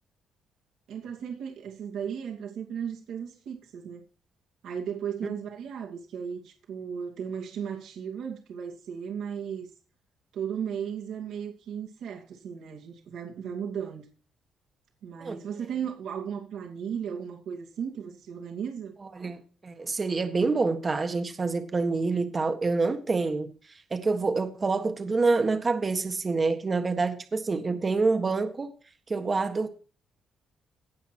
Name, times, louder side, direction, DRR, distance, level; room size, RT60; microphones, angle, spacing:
voice 1, 0.9-4.0 4.6-9.7 10.3-14.0 15.0-19.0, right 7 dB, 80° right, 2.5 m, -35 dB
voice 2, 19.0-28.7 29.1-29.7, right 3 dB, 30° right, 1.5 m, -27 dB
17.5 x 5.9 x 4.5 m
cardioid pair, 90°, 0 cm